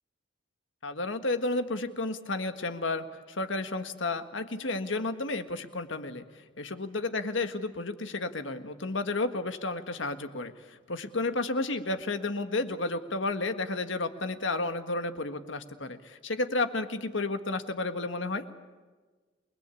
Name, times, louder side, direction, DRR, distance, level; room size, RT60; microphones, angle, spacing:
voice 1, 0.8-6.2 6.6-18.5, left 2 dB, 70° left, 8 dB, 1.7 m, -32 dB
29.0 x 20.5 x 8.5 m, 1.4 s
head